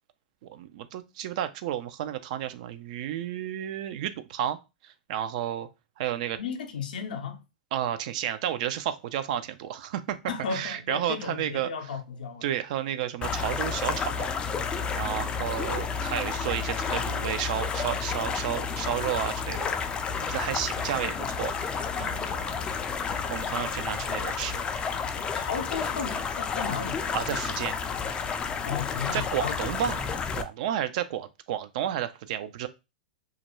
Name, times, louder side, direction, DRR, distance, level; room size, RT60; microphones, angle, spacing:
voice 1, 0.4-4.6 4.8-5.7 6.0-6.4 7.7-10.2 10.5-11.9 12.4-14.3 15.0-19.7 20.2-21.5 22.0-22.6 23.3-24.6 27.1-27.8 29.1-30.1 30.3-32.7, right 11 dB, 55° right, 0.3 m, -32 dB
voice 2, 6.4-7.4 10.3-12.4 25.3-27.1 28.6-29.7, left 6 dB, 75° left, 0.5 m, -34 dB
sound 1, 13.2-30.4, left 6 dB, 20° left, 0.3 m, -31 dB
2.4 x 2.1 x 3.0 m
hypercardioid pair, 105°, 5 cm